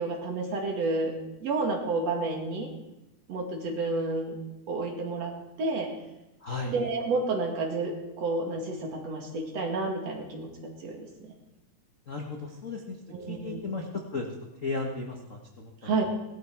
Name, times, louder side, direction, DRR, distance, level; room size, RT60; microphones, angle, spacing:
voice 1, 0.0-2.7 3.3-4.4 4.7-5.3 5.6-5.9 6.7-11.3 13.1-13.6 15.8-16.0, right 3 dB, 55° right, 2 dB, 3.0 m, -30 dB
voice 2, 6.4-6.7 12.1-12.9 13.3-13.8 14.1-14.3 14.6-16.0, left 3 dB, 55° left, 1 dB, 0.8 m, -35 dB
17.5 x 12.5 x 4.6 m, 0.95 s
omnidirectional pair, 3.7 m